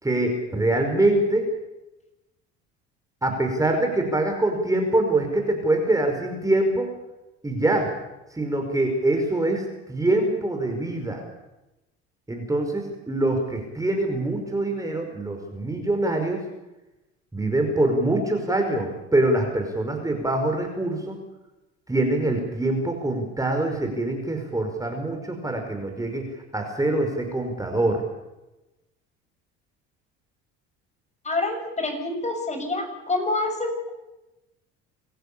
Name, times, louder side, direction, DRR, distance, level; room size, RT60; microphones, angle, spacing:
voice 1, 0.0-1.5 3.2-6.9 7.4-7.9 8.3-11.2 12.3-16.4 17.3-21.2 21.9-26.3 26.5-28.0, right 2 dB, 10° right, 3 dB, 5.1 m, -24 dB
voice 2, 31.2-33.9, left 2 dB, 20° left, 5 dB, 6.8 m, -27 dB
27.0 x 14.5 x 8.7 m, 0.98 s
supercardioid pair, 90°, 31 cm